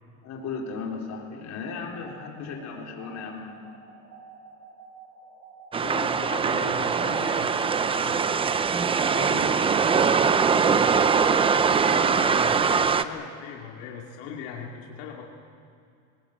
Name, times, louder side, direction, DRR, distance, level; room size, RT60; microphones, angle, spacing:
voice 1, 0.2-3.6 5.8-6.4 9.1-9.5 11.8-12.0, left 5 dB, 45° left, -1 dB, 4.3 m, -36 dB
sound 1, 1.9-11.3, right 5 dB, 85° right, 6.9 m, -49 dB
sound 2, 5.7-13.0, right 6 dB, 15° right, 0.5 m, -22 dB
voice 2, 6.1-8.2 11.8-15.2, left 6 dB, 85° left, -1 dB, 2.7 m, -39 dB
21.5 x 19.0 x 8.6 m, 2.5 s
cardioid pair, 145°, 37 cm